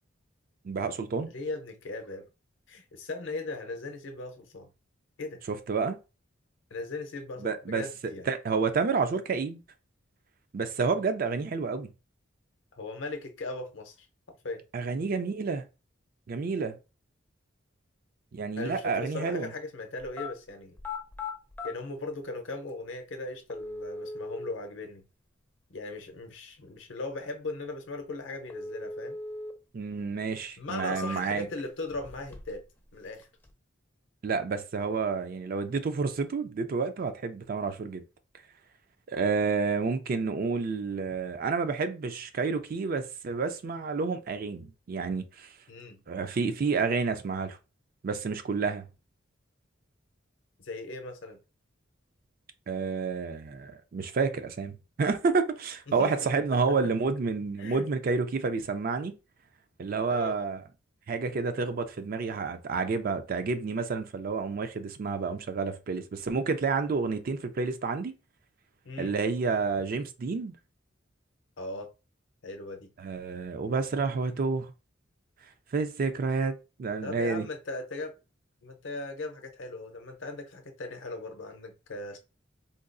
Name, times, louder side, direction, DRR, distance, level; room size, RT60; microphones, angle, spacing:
voice 1, 0.6-1.3 5.5-6.0 7.4-9.6 10.5-11.9 14.7-15.7 16.3-16.8 18.3-19.5 29.7-31.5 34.2-38.0 39.1-45.5 46.1-47.6 48.0-48.9 52.7-59.1 59.8-60.6 61.1-68.1 69.0-70.6 73.0-74.7 75.7-77.5, right 4 dB, 45° right, 0.4 m, -29 dB
voice 2, 1.3-2.3 2.7-4.7 5.2-5.4 6.7-8.3 12.8-13.9 14.3-14.7 18.6-20.8 21.6-25.0 25.7-29.2 30.6-32.7 32.9-33.3 45.7-46.0 50.6-51.4 55.9-56.1 56.7-56.8 57.6-57.9 60.1-60.4 68.8-69.1 71.6-71.9 72.4-72.9 77.0-78.2 78.6-82.2, left 2 dB, 70° left, 0.6 m, -38 dB
sound 1, 20.0-20.3 20.7-21.7 22.7-22.8 23.5-24.5 28.5-29.5 29.9-30.0 30.6-31.5 31.9-32.6 32.9-33.5, left 3 dB, 10° left, 0.5 m, -39 dB
3.8 x 2.3 x 2.5 m
head